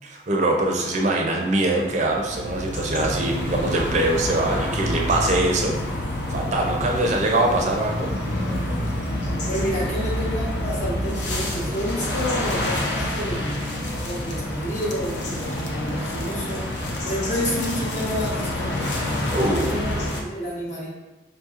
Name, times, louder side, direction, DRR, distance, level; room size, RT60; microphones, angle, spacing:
voice 1, 0.0-5.8 6.3-8.1 19.3-19.7, right 2 dB, 40° right, 0 dB, 0.4 m, -23 dB
sound 1, 1.8-20.2, left 1 dB, 80° left, 0.6 m, -27 dB
voice 2, 9.5-13.7 14.0-16.7 17.0-19.0 19.5-20.9, equal, 40° left, -4 dB, 0.9 m, -29 dB
4.9 x 2.7 x 2.4 m, 1.1 s
head